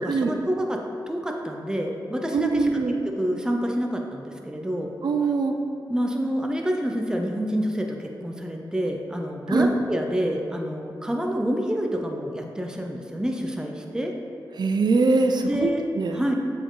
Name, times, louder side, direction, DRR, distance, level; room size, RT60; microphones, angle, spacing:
voice 1, 0.0-4.9 5.9-14.1 15.4-15.8 16.1-16.3, equal, 10° right, 1 dB, 0.7 m, -28 dB
voice 2, 2.3-3.0 5.0-5.5 9.5-9.7 14.5-16.2, right 3 dB, 60° right, 5 dB, 0.6 m, -22 dB
7.6 x 4.4 x 3.9 m, 2.7 s
cardioid pair, 50°, 8 cm